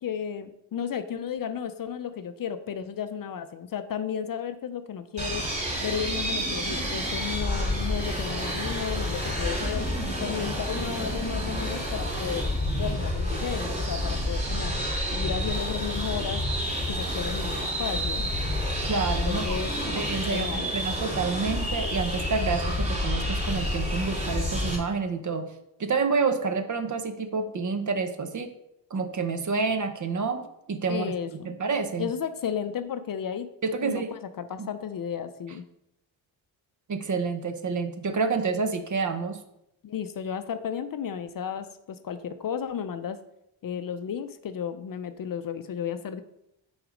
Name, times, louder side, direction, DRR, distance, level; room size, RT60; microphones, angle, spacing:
voice 1, 0.0-5.4 5.8-9.9 10.2-12.5 12.8-14.7 15.1-16.4 16.9-18.3 19.3-20.7 30.9-31.6 32.0-33.5 33.8-35.6 39.8-43.2 43.6-46.2, left 8 dB, 50° left, 10 dB, 0.5 m, -33 dB
sound 1, 5.2-24.8, equal, 15° right, 2.7 m, -29 dB
voice 2, 18.9-19.6 19.9-25.5 25.8-28.5 28.9-31.1 31.3-32.1 33.6-34.1 34.6-34.7 36.9-39.4, right 4 dB, 40° right, 8 dB, 0.7 m, -28 dB
6.0 x 4.0 x 5.0 m, 0.81 s
cardioid pair, 100°, 45 cm